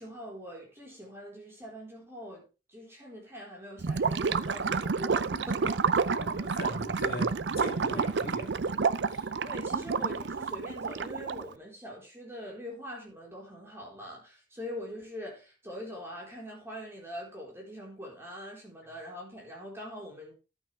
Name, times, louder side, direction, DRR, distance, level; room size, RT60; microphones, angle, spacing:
voice 1, 0.0-6.1 7.9-8.1 9.4-20.3, equal, 15° right, 4.3 m, -43 dB
Gurgling / Liquid, 3.8-11.5, right 5 dB, 85° right, 0.6 m, -29 dB
voice 2, 6.1-8.8 9.1-9.3, left 1 dB, 55° left, 2.7 m, -40 dB
12.0 x 8.5 x 3.4 m
head